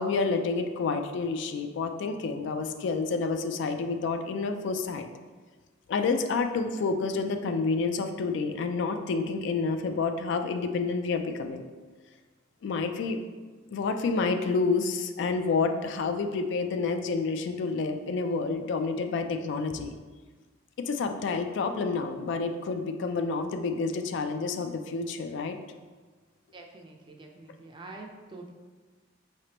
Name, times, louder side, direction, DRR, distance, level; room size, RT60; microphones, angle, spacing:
voice 1, 0.0-5.1 5.9-11.6 12.6-13.2 13.7-19.9 20.8-25.6, left 4 dB, 65° left, 7 dB, 0.3 m, -29 dB
voice 2, 26.5-28.5, right 2 dB, 25° right, 1 dB, 0.4 m, -46 dB
4.9 x 3.2 x 2.8 m, 1.3 s
head